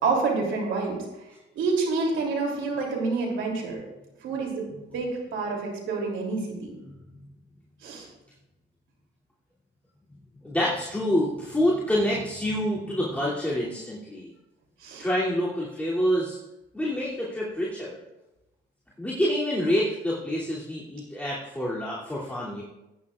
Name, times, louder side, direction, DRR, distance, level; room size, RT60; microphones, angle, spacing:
voice 1, 0.0-1.0 1.5-3.8 4.2-6.7 7.8-8.1 14.8-15.0, right 4 dB, 75° right, -1 dB, 3.2 m, -28 dB
voice 2, 10.4-14.3 15.0-16.4 16.7-18.0 19.0-22.6, equal, 5° left, -8 dB, 2.8 m, -27 dB
18.5 x 9.7 x 2.5 m, 0.98 s
cardioid pair, 90°, 20 cm